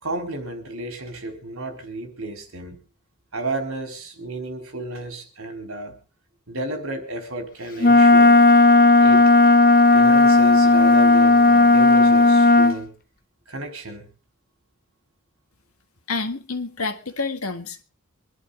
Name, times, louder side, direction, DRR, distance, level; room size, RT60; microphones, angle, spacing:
voice 1, 0.0-2.8 3.3-6.0 6.5-8.4 9.0-9.2 9.9-12.9 13.5-14.1, right 2 dB, 75° right, 4.0 m, -32 dB
Wind instrument woodwind instrument, 7.8-12.8, left 2 dB, 40° left, 1.0 m, -14 dB
voice 2, 16.1-17.8, left 3 dB, 85° left, 1.7 m, -28 dB
24.5 x 11.0 x 3.8 m
head